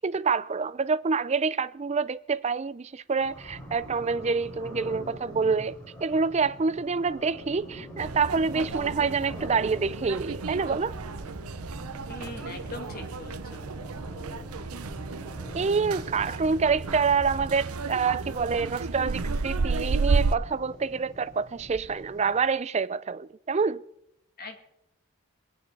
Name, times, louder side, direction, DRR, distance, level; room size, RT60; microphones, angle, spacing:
voice 1, 0.0-11.0 15.5-23.8, right 5 dB, 30° right, 0.4 m, -27 dB
sound 1, 3.2-22.5, equal, 15° left, 5.0 m, -44 dB
sound 2, 8.0-20.3, right 4 dB, 85° right, 0.7 m, -32 dB
voice 2, 12.1-13.7 24.4-24.6, left 2 dB, 45° left, 2.1 m, -41 dB
22.5 x 9.1 x 4.7 m
head